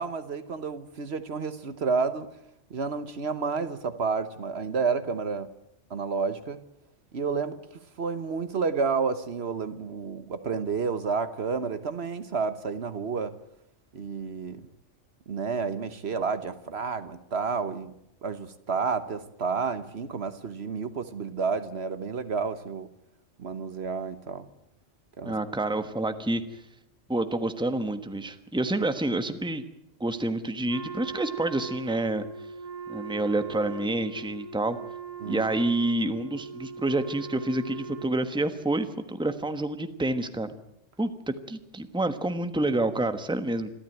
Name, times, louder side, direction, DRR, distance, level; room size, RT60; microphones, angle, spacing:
voice 1, 0.0-2.3 2.7-5.5 5.9-6.6 7.1-7.6 8.0-13.3 13.9-14.7 15.3-17.9 18.2-22.9 23.4-24.4 25.2-25.3 35.2-35.5, right 5 dB, 60° right, 11 dB, 1.3 m, -30 dB
voice 2, 25.2-26.6 27.1-29.6 30.0-32.2 32.9-34.8 35.2-40.5 41.0-43.7, right 2 dB, 5° right, 9 dB, 1.2 m, -28 dB
Wind instrument woodwind instrument, 30.7-38.6, right 5 dB, 35° right, 0.9 m, -40 dB
26.0 x 13.0 x 9.1 m, 0.81 s
omnidirectional pair, 1.2 m